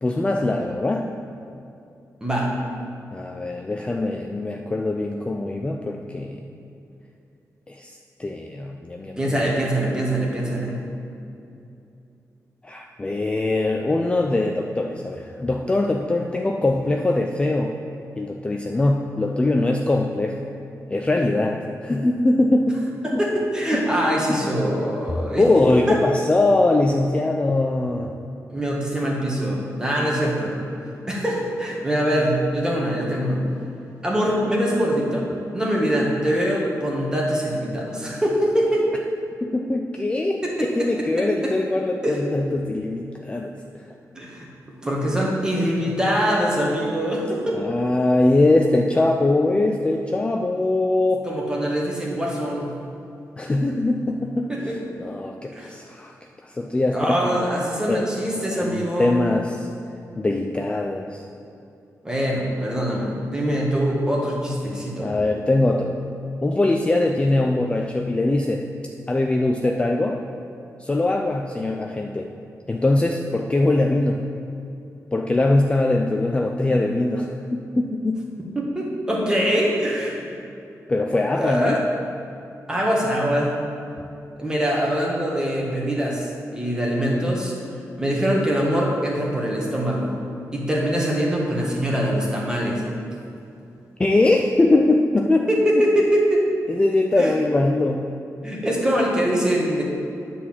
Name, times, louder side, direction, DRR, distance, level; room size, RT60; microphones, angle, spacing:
voice 1, 0.0-1.1 3.1-6.4 7.7-9.5 12.6-17.8 18.2-20.4 20.9-22.8 23.1-23.2 23.7-23.8 24.3-24.6 25.4-28.1 39.4-43.8 47.5-51.2 53.4-56.1 56.4-57.2 57.9-58.0 58.5-59.7 60.2-61.2 65.0-66.0 66.4-68.6 69.1-70.2 70.8-72.3 72.7-74.2 75.1-78.2 80.9-81.8 94.0-95.5 95.7-95.8 96.7-98.1, left 2 dB, 20° left, 1 dB, 0.4 m, -22 dB
voice 2, 2.2-2.5 9.2-10.7 23.0-25.4 25.9-26.0 28.5-30.6 31.1-33.4 34.0-35.3 35.5-38.9 40.4-40.7 41.2-41.5 42.0-42.2 44.1-44.5 44.8-47.6 51.2-52.7 54.5-54.7 55.5-55.7 56.9-59.2 62.0-65.1 78.5-80.3 81.3-81.8 82.7-83.5 84.4-87.5 88.0-90.1 90.5-92.8 95.5-96.4 97.2-97.3 98.4-99.8, equal, 10° right, -3 dB, 1.6 m, -23 dB
9.8 x 4.2 x 7.3 m, 2.7 s
wide cardioid pair, 150°, 6 cm